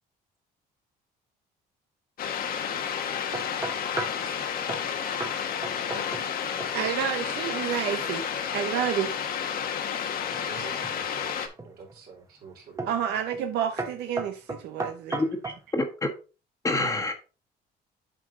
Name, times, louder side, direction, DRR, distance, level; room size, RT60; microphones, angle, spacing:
sound 1, 2.2-11.5, left 8 dB, 60° left, 1.3 m, -31 dB
sound 2, 3.3-4.3 4.7-4.9 5.2-5.4 5.6-6.3 6.6-7.0 10.3-11.0 11.6-12.0 12.8-13.0 13.3-13.5 13.8-15.6, right 3 dB, 20° right, 1.1 m, -35 dB
voice 1, 6.7-8.3 8.5-9.2 10.6-10.7 12.9-15.2, right 9 dB, 80° right, 0.8 m, -29 dB
voice 2, 10.3-13.2, right 6 dB, 65° right, 3.4 m, -48 dB
voice 3, 15.1-16.1 16.6-17.1, left 2 dB, 20° left, 1.4 m, -27 dB
7.9 x 4.7 x 3.7 m
cardioid pair, 110°, 17 cm